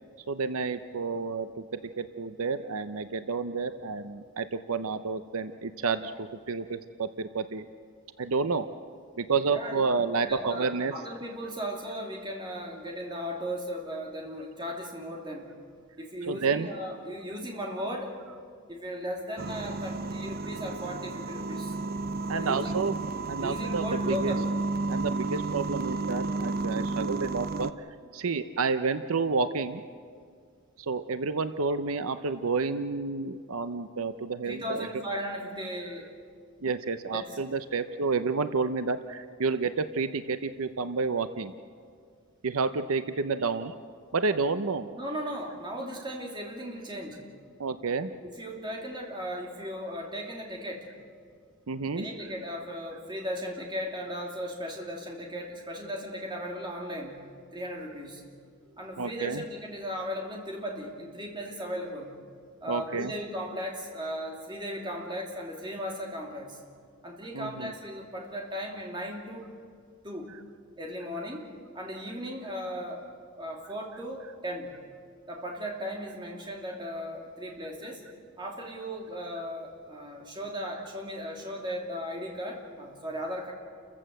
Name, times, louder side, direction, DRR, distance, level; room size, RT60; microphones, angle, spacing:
voice 1, 0.3-1.6 2.0-7.7 8.2-8.7 9.2-10.9 16.3-16.7 22.3-22.9 23.3-24.3 24.9-27.7 28.1-29.8 30.8-35.0 36.6-41.5 42.4-43.7 44.1-44.9 47.6-48.1 51.7-52.1 59.0-59.4 62.7-63.1 67.3-67.7, right 4 dB, 80° right, 10 dB, 0.7 m, -30 dB
voice 2, 9.5-9.8 10.2-15.5 16.0-18.2 18.7-21.8 22.3-22.8 23.4-24.5 26.7-27.0 34.5-36.1 37.1-37.4 44.9-47.3 48.2-50.9 51.9-58.2 58.8-62.1 62.6-66.6 67.0-69.5 70.0-70.3 70.8-73.1 73.4-74.7 75.3-78.0 78.4-83.5, equal, 20° right, 0 dB, 2.9 m, -37 dB
sound 1, 19.4-27.7, right 3 dB, 45° right, 0.6 m, -32 dB
29.5 x 15.0 x 7.7 m, 2.1 s
head